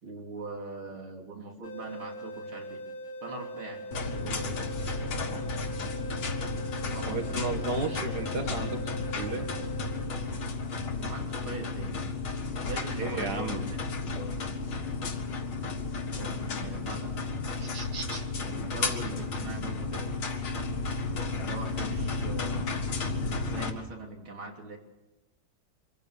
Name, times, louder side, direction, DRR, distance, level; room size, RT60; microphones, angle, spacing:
voice 1, 0.0-2.8 3.2-4.8 6.8-7.6 11.0-12.0 12.6-13.8 14.1-14.4 16.2-17.2 18.5-20.1 21.4-22.6 23.2-24.8, right 3 dB, 80° right, 1 dB, 4.1 m, -42 dB
sound 1, 1.6-10.6, right 1 dB, 55° left, 1.8 m, -41 dB
sound 2, 3.9-23.7, left 3 dB, 80° left, 2.8 m, -33 dB
voice 2, 7.1-8.8 9.2-9.5 13.0-13.7 17.6-18.2, right 3 dB, 50° right, 5 dB, 2.1 m, -34 dB
25.0 x 15.0 x 6.9 m, 1.1 s
omnidirectional pair, 2.2 m